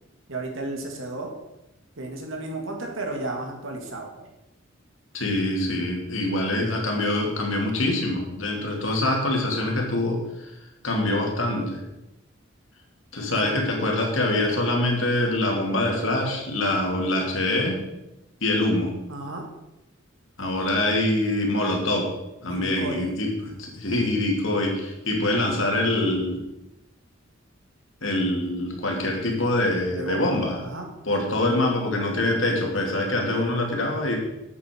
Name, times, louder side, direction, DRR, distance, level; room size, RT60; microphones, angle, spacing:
voice 1, 0.3-1.3 2.0-4.3 13.3-13.5 19.1-19.4 22.5-23.0 29.9-30.9 31.4-31.6, right 2 dB, 70° right, 2 dB, 2.3 m, -33 dB
voice 2, 5.1-10.5 10.8-11.8 13.1-17.8 18.4-19.0 20.4-22.1 22.4-26.4 28.0-30.6 31.0-34.2, left 1 dB, 70° left, 1 dB, 2.6 m, -24 dB
12.0 x 8.4 x 4.6 m, 0.93 s
head